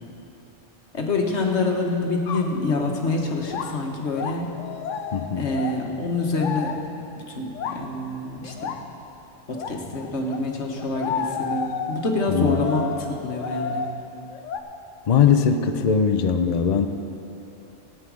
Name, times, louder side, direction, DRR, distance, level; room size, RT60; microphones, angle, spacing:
voice 1, 0.9-4.5 5.3-6.7 7.1-8.7 9.5-13.8, left 2 dB, 65° left, 1 dB, 1.5 m, -26 dB
sound 1, 2.3-2.6 3.4-6.9 7.5-7.9 8.4-8.9 9.5-10.5 10.8-14.6, left 6 dB, 90° left, 1.0 m, -32 dB
voice 2, 5.1-5.5 12.3-12.7 15.1-16.9, left 7 dB, 50° left, 7 dB, 0.5 m, -20 dB
17.0 x 9.0 x 4.8 m, 2.9 s
omnidirectional pair, 1.2 m